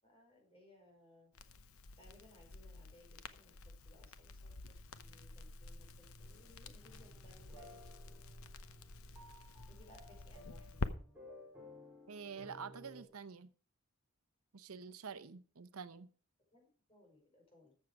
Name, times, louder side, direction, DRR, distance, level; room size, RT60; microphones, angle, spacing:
voice 1, 0.0-1.3 2.0-3.5 3.8-4.5 4.9-8.1 9.7-11.2 16.5-17.7, left 1 dB, 25° left, 1 dB, 5.1 m, -64 dB
Crackle, 1.3-10.9, left 3 dB, 80° left, 0.9 m, -48 dB
sound 1, 6.8-13.0, left 1 dB, 10° right, 3.9 m, -57 dB
voice 2, 12.1-13.5 14.5-16.1, right 6 dB, 85° right, 13 dB, 0.8 m, -48 dB
14.0 x 7.5 x 4.8 m, 0.40 s
head